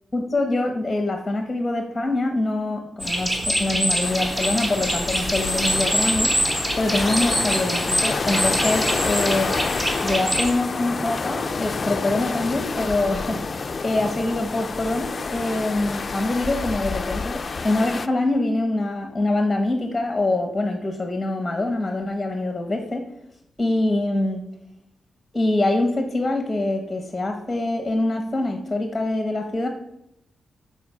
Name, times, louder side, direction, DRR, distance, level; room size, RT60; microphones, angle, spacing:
voice 1, 0.1-6.3 6.8-9.5 10.0-13.4 13.8-23.0 23.6-24.4 25.3-29.7, left 2 dB, 10° left, 4 dB, 1.1 m, -24 dB
sound 1, 3.0-10.5, equal, 15° right, 1.6 m, -25 dB
sound 2, 4.0-18.1, left 4 dB, 35° left, 0.4 m, -28 dB
9.3 x 4.9 x 6.9 m, 0.80 s
wide cardioid pair, 150°, 0 cm